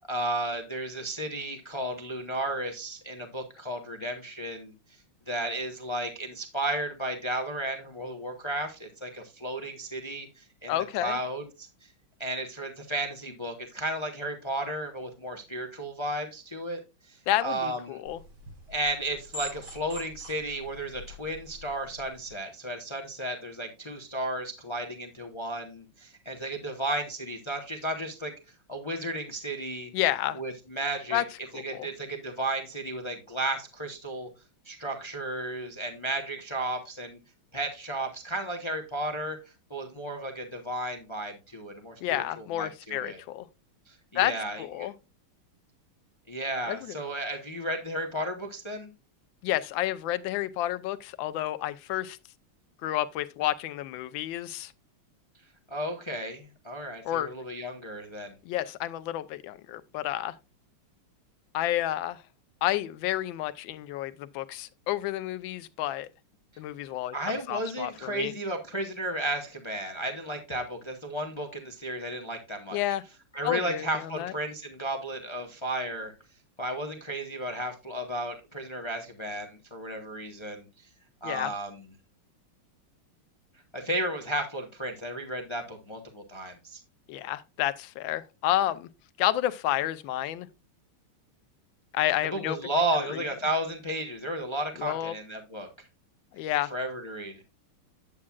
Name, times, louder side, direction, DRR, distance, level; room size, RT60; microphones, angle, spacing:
voice 1, 0.1-4.7 5.3-11.7 12.2-16.8 17.1-18.0 18.7-29.9 30.3-31.2 31.5-34.3 34.6-37.2 37.5-39.4 39.7-43.2 43.9-44.9 46.3-48.9 55.7-58.4 67.1-72.8 73.3-76.1 76.6-80.7 81.2-81.8 83.7-86.8 92.3-95.7 96.7-97.4, right 1 dB, 50° left, 0.3 m, -33 dB
voice 2, 10.7-11.2 17.3-18.2 29.9-30.4 31.1-31.2 31.5-31.9 42.0-43.5 44.1-44.3 44.6-44.9 46.6-47.0 49.4-52.2 52.8-54.7 57.0-57.3 58.4-60.4 61.5-62.2 62.6-66.1 66.6-67.1 67.5-68.3 72.7-73.0 73.4-74.3 81.2-81.5 87.1-88.9 89.2-90.5 91.9-92.6 92.9-93.1 94.8-95.1 96.3-96.7, left 13 dB, 75° left, 1.3 m, -30 dB
sound 1, 18.1-22.3, equal, 85° right, 5.0 m, -44 dB
8.7 x 8.4 x 2.3 m
omnidirectional pair, 2.4 m